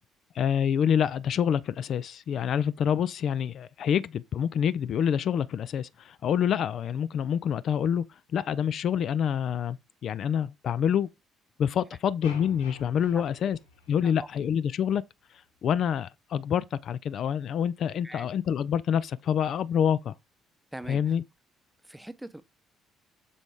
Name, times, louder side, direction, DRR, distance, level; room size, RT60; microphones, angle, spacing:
voice 1, 0.3-8.0 8.3-11.1 11.6-13.6 13.9-15.0 15.3-20.1 20.9-21.2, left 8 dB, 50° left, 0.4 m, -27 dB
sound 1, 12.2-14.5, left 6 dB, 75° left, 1.3 m, -48 dB
voice 2, 20.7-21.2 21.8-22.4, right 1 dB, 5° right, 0.8 m, -42 dB
6.9 x 5.0 x 3.6 m
figure-of-eight pair, 50°, 0 cm